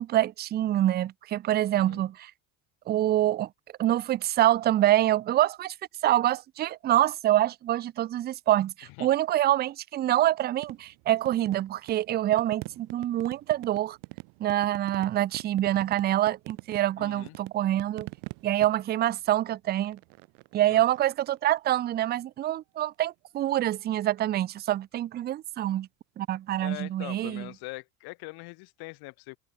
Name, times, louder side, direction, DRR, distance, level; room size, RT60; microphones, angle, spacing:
voice 1, 0.0-2.3 2.9-3.5 3.8-5.7 6.0-14.0 14.4-18.1 18.4-20.0 20.5-25.9 26.2-27.5, right 13 dB, 25° right, 0.4 m, -26 dB
voice 2, 1.7-2.0 9.0-9.1 17.0-17.4 20.6-20.8 26.6-29.4, left 26 dB, 65° left, 1.2 m, -42 dB
sound 1, 10.6-22.0 23.7-24.1 27.3-27.5, right 36 dB, 80° right, 2.6 m, -45 dB
cardioid pair, 150°, 41 cm